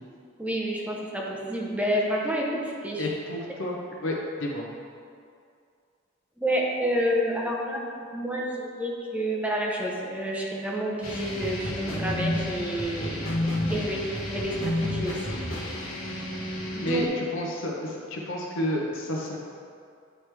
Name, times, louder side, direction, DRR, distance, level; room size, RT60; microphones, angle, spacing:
voice 1, 0.4-3.2 6.4-7.8 8.1-13.2 13.7-14.0 14.3-15.4 15.8-16.0 16.7-17.0, equal, 5° right, -2 dB, 0.6 m, -29 dB
voice 2, 3.0-3.8 4.0-4.1 4.4-4.7 13.7-14.1 16.8-19.4, equal, 70° left, -2 dB, 0.7 m, -30 dB
sound 1, 11.0-17.1, left 1 dB, 90° left, 1.2 m, -31 dB
8.9 x 3.2 x 3.3 m, 2.3 s
head